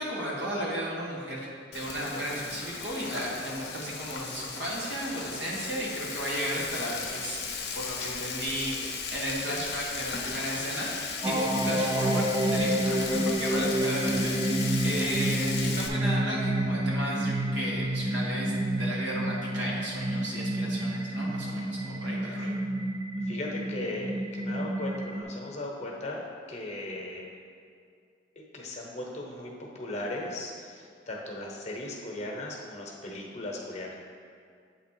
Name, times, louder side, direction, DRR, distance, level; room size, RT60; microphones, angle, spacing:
voice 1, 0.0-1.5 1.7-22.5, equal, 70° right, -5 dB, 1.5 m, -34 dB
Frying (food), 1.7-15.9, left 5 dB, 60° left, 0.7 m, -36 dB
sound 1, 11.2-25.2, right 1 dB, 25° right, 0.4 m, -29 dB
voice 2, 23.2-27.2 28.5-33.9, left 2 dB, 40° left, -1 dB, 1.0 m, -37 dB
8.1 x 3.6 x 4.5 m, 2.3 s
head